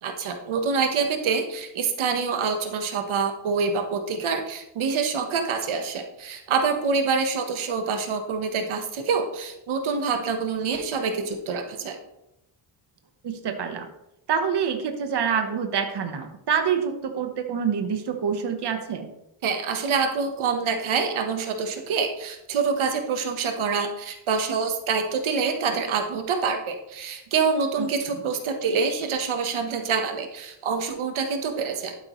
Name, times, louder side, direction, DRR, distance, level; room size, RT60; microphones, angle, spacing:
voice 1, 0.0-12.0 19.4-32.0, right 5 dB, 75° right, 5 dB, 1.2 m, -26 dB
voice 2, 13.2-13.9 14.3-19.1 27.8-27.9, right 7 dB, 55° right, 6 dB, 1.2 m, -26 dB
12.0 x 8.3 x 3.1 m, 0.87 s
cardioid pair, 110°, 48 cm